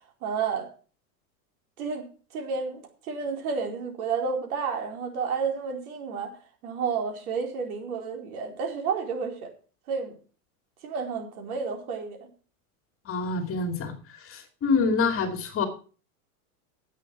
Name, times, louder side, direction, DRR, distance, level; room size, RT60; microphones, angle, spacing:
voice 1, 0.2-0.7 1.8-2.1 2.3-6.3 6.6-9.5 9.9-10.2 10.8-12.3, right 5 dB, 75° right, 4.5 m, -31 dB
voice 2, 13.1-13.9 14.2-15.7, left 4 dB, 30° left, 2.4 m, -26 dB
10.5 x 8.2 x 6.2 m
supercardioid pair, 130°, 44 cm